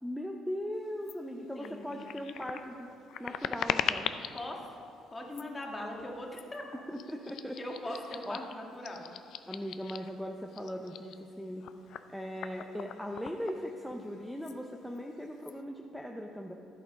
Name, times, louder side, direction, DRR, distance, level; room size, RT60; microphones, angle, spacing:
voice 1, 0.0-2.9 3.2-4.1 6.9-7.6 7.9-8.4 9.5-11.7 12.1-16.5, equal, ahead, 1 dB, 0.6 m, -39 dB
sound 1, 1.0-1.2 1.6-4.5 5.2-5.6 6.3-6.6 6.9-10.2 10.5-14.1 14.4-14.6 14.9-15.5, left 9 dB, 65° left, 0.4 m, -40 dB
voice 2, 1.5-1.9 4.3-4.8 5.1-6.6 7.6-9.1, left 1 dB, 20° left, 0 dB, 1.7 m, -40 dB
11.0 x 8.4 x 5.2 m, 2.6 s
cardioid pair, 100°, 0 cm